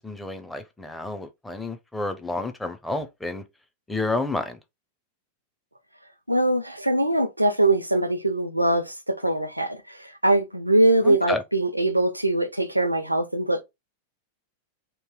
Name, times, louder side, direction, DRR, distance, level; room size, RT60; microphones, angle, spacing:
voice 1, 0.0-3.4 3.9-4.6 11.0-11.4, left 2 dB, 5° left, 0.6 m, -30 dB
voice 2, 6.3-9.8 10.2-13.6, right 1 dB, 85° right, 0.5 m, -22 dB
3.1 x 2.7 x 3.7 m
figure-of-eight pair, 90°, 0 cm